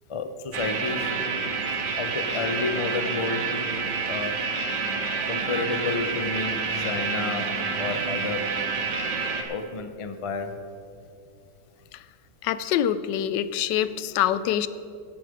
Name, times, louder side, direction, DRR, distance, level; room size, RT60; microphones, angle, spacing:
voice 1, 0.1-1.1 2.0-3.5 4.1-4.4 5.3-7.5 7.8-8.5 9.5-10.5, left 4 dB, 60° left, 8 dB, 0.3 m, -30 dB
sound 1, 0.5-9.4, right 4 dB, 80° right, 1.8 m, -28 dB
voice 2, 12.4-14.7, left 10 dB, 85° left, 14 dB, 1.2 m, -25 dB
16.5 x 8.4 x 5.1 m, 2.5 s
omnidirectional pair, 1.8 m